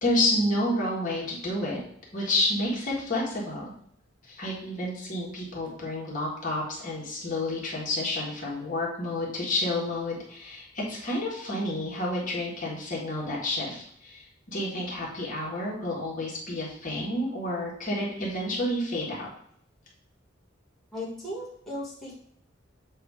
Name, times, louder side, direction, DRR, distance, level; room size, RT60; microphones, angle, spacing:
voice 1, 0.0-1.8 2.1-3.7 4.2-19.3, left 1 dB, 40° left, -5 dB, 1.8 m, -30 dB
voice 2, 20.9-22.1, left 1 dB, ahead, -6 dB, 1.8 m, -36 dB
7.5 x 2.7 x 4.8 m, 0.68 s
head